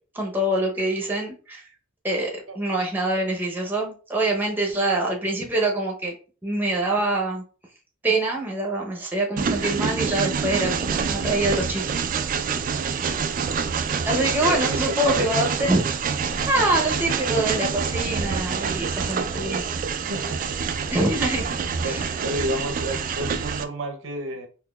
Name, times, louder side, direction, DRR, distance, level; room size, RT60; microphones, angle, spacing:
voice 1, 0.1-1.6 2.0-6.1 6.4-7.4 8.0-11.8 12.1-12.4 14.1-15.8 16.2-19.6 20.9-21.5 21.8-22.0, right 1 dB, 10° right, 0.7 m, -25 dB
Train, 9.4-23.6, right 6 dB, 45° right, 0.3 m, -26 dB
voice 2, 13.9-15.3 20.1-20.4 21.0-21.1 21.8-24.5, right 1 dB, 75° right, 0.7 m, -31 dB
3.8 x 2.8 x 2.3 m
head